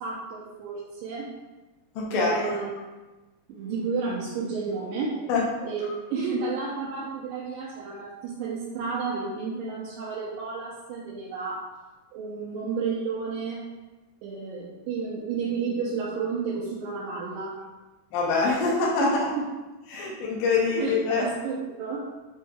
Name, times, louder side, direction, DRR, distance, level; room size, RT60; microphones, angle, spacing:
voice 1, 0.0-1.3 2.1-2.7 3.5-5.1 5.6-5.8 6.1-11.6 12.1-13.6 14.2-17.5 19.0-19.2 20.1-20.2 20.8-20.9 21.2-22.0, right 5 dB, 80° right, -6 dB, 2.1 m, -31 dB
voice 2, 2.0-2.7 5.3-5.4 18.1-19.1 19.9-21.3, left 4 dB, 90° left, -3 dB, 2.4 m, -25 dB
7.1 x 3.0 x 2.3 m, 1.1 s
omnidirectional pair, 4.0 m